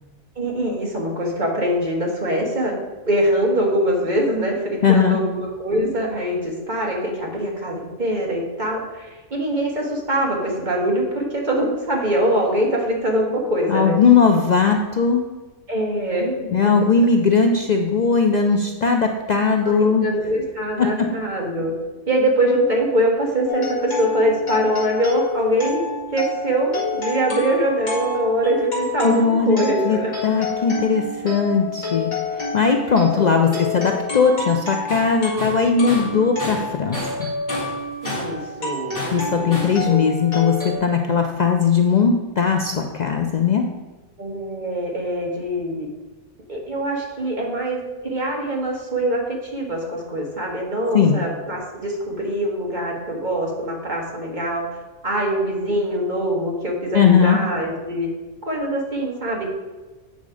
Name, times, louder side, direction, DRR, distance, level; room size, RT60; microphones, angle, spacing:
voice 1, 0.3-14.0 15.7-16.9 19.7-21.7 22.1-25.8 26.1-30.1 32.8-33.6 38.0-39.0 39.4-40.0 44.2-45.9 46.5-54.6 55.0-58.1 58.4-59.4, right 1 dB, 35° right, -1 dB, 1.7 m, -23 dB
voice 2, 4.8-5.2 13.7-15.3 16.5-20.1 20.8-21.1 29.0-37.3 39.1-43.7 50.9-51.2 56.9-57.4, left 5 dB, 85° left, 4 dB, 0.3 m, -19 dB
sound 1, 23.5-40.8, left 3 dB, 35° left, 2.0 m, -29 dB
Tools, 34.9-35.1 35.4-37.2 37.5-38.4 39.0-39.8, left 1 dB, 10° left, 2.9 m, -31 dB
8.0 x 5.2 x 4.9 m, 1.2 s
omnidirectional pair, 1.5 m